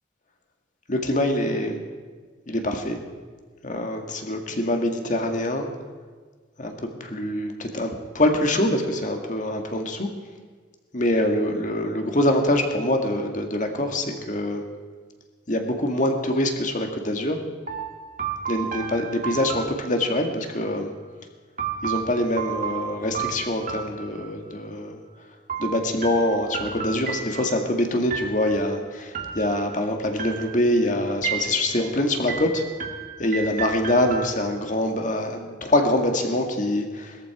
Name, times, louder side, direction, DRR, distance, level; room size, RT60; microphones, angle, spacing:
voice 1, 0.9-1.8 2.5-3.0 3.6-5.7 6.6-10.1 10.9-14.6 15.5-17.4 18.5-20.9 21.8-25.0 25.6-32.6 33.2-37.2, left 1 dB, 40° left, 4 dB, 1.7 m, -24 dB
sound 1, 17.7-20.4 21.6-24.6 25.5-27.7 28.1-28.7 29.1-29.8 30.2-30.8 31.2-31.9 32.3-34.8, right 6 dB, 40° right, 1.5 m, -33 dB
20.5 x 14.0 x 4.8 m, 1.5 s
head